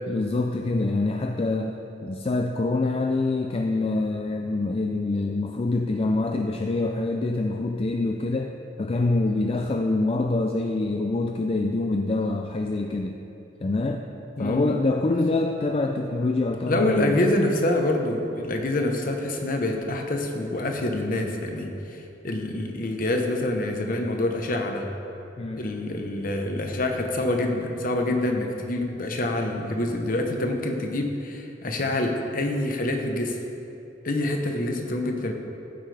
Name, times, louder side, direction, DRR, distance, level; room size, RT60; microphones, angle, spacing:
voice 1, 0.1-1.7 2.0-8.5 8.8-13.1 13.6-14.0 14.4-17.2 25.4-25.6, left 2 dB, 30° left, 4 dB, 0.4 m, -25 dB
voice 2, 14.4-14.8 16.7-24.9 25.5-33.4 34.0-35.3, left 1 dB, 50° left, 3 dB, 0.9 m, -26 dB
15.0 x 7.7 x 3.3 m, 2.9 s
head